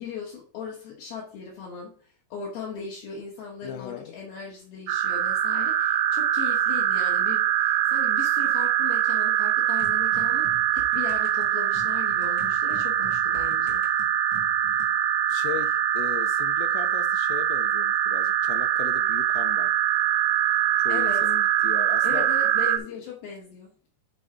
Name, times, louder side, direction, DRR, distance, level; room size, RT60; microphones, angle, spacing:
voice 1, 0.0-10.5 10.7-13.9 20.5-20.6 20.9-21.2 22.0-23.7, left 6 dB, 65° left, 2.9 m, -38 dB
voice 2, 3.6-4.1 15.3-19.8 20.8-23.0, left 12 dB, 85° left, 2.8 m, -38 dB
sound 1, 4.9-22.8, right 11 dB, 80° right, 2.8 m, -23 dB
sound 2, 9.8-14.9, right 2 dB, 60° right, 0.9 m, -46 dB
7.5 x 4.5 x 4.7 m
omnidirectional pair, 5.3 m